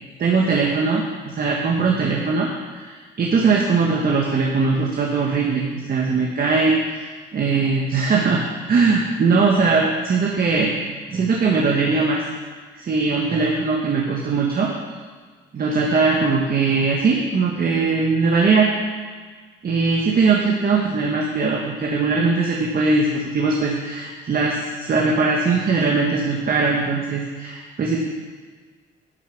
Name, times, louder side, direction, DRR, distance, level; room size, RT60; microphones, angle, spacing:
voice 1, 0.2-6.8 7.3-8.4 8.7-10.7 11.1-12.2 12.8-14.7 15.5-18.7 19.6-28.0, right 4 dB, 50° right, -1 dB, 1.5 m, -20 dB
10.5 x 7.4 x 6.1 m, 1.5 s
cardioid pair, 90°, 20 cm